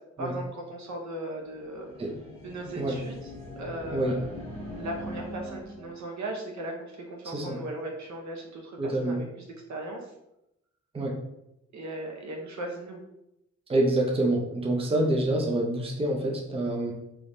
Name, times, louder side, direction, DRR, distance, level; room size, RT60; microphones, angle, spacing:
voice 1, 0.2-1.9 2.4-3.3 3.6-4.2 4.7-9.3 9.7-10.0 11.7-13.0, right 1 dB, 70° right, 0 dB, 0.8 m, -37 dB
sound 1, 1.4-6.1, left 1 dB, 20° left, 1.5 m, -41 dB
voice 2, 7.2-7.6 8.8-9.2 10.9-11.2 13.7-16.9, right 1 dB, 20° right, -1 dB, 0.6 m, -27 dB
3.4 x 3.1 x 2.6 m, 0.84 s
wide cardioid pair, 115°, 30 cm